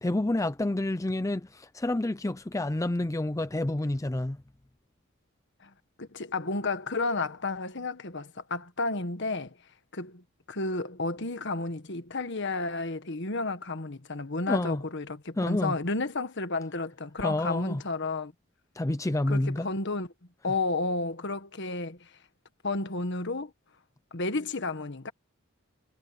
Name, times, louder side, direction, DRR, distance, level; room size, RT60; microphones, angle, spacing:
voice 1, 0.0-4.4 14.5-14.8 15.4-15.7 17.2-17.8 18.8-19.7, left 1 dB, 15° left, 0.5 m, -29 dB
voice 2, 6.0-9.5 9.9-10.2 10.5-18.3 19.3-20.1 20.4-22.1 22.6-23.5 24.1-25.1, left 3 dB, 60° left, 1.6 m, -32 dB
head